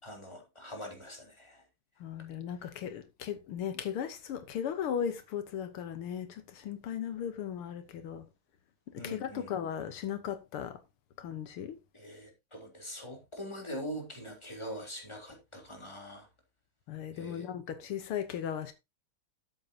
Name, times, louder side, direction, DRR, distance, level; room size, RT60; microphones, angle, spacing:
voice 1, 0.0-1.6 2.6-2.7 9.0-9.5 11.9-16.3 17.1-17.5, equal, 10° left, 3.6 m, -43 dB
voice 2, 2.0-8.3 8.9-10.8 11.2-11.8 16.9-18.7, left 8 dB, 85° left, 2.0 m, -37 dB
13.5 x 8.0 x 2.8 m
omnidirectional pair, 2.3 m